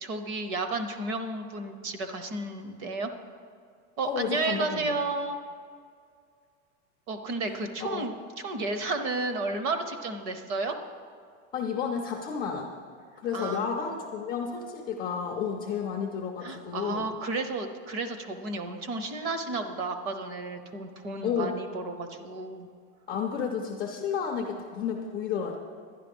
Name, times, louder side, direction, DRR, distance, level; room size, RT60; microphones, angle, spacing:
voice 1, 0.0-3.1 4.0-5.4 7.1-10.8 13.3-13.7 16.4-22.7, right 3 dB, 35° right, 8 dB, 0.8 m, -32 dB
voice 2, 4.1-4.8 7.5-8.0 11.5-12.7 13.2-17.1 21.2-21.5 23.1-25.5, left 7 dB, 15° left, 0 dB, 0.3 m, -31 dB
11.5 x 10.5 x 5.2 m, 2.2 s
supercardioid pair, 175°, 37 cm